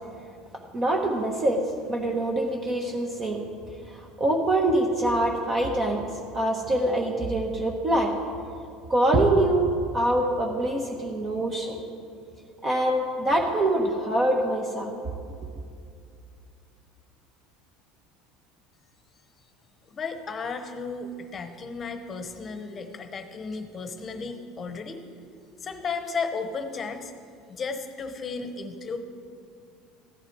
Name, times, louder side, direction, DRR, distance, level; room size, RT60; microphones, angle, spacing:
voice 1, 0.7-1.6 1.9-3.4 4.2-6.0 6.3-8.1 8.9-11.8 12.6-14.9, right 1 dB, 25° right, 0 dB, 1.1 m, -24 dB
voice 2, 19.9-25.0 25.6-27.1 27.5-29.0, left 4 dB, 25° left, 8 dB, 1.1 m, -34 dB
15.0 x 10.5 x 4.7 m, 2.4 s
cardioid pair, 140°, 0 cm